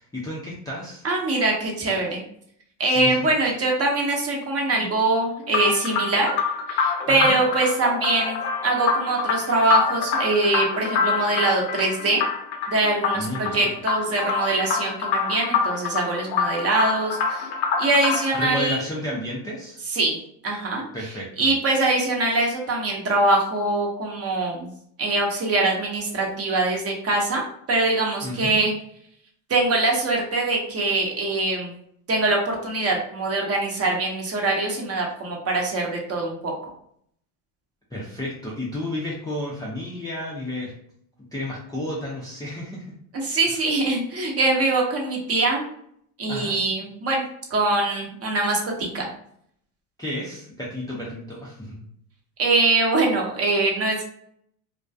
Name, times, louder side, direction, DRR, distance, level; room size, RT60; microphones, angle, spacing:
voice 1, 0.0-1.0 2.9-3.2 7.1-7.4 13.1-13.7 18.3-19.8 20.9-21.5 28.2-28.6 37.9-40.7 41.3-43.0 43.5-43.7 46.3-46.6 50.0-51.8, left 1 dB, 10° left, -6 dB, 0.4 m, -32 dB
voice 2, 1.0-2.2 2.8-6.3 6.7-12.2 12.7-17.5 17.8-18.8 19.9-20.2 20.4-20.8 21.4-24.7 25.0-28.7 29.5-31.7 32.1-36.7 43.1-45.7 46.2-47.2 47.5-49.1 52.4-54.2, right 2 dB, 30° right, 0 dB, 0.7 m, -23 dB
sound 1, 5.5-18.5, left 5 dB, 60° left, 0.6 m, -26 dB
2.3 x 2.2 x 2.6 m, 0.67 s
supercardioid pair, 95°, 47 cm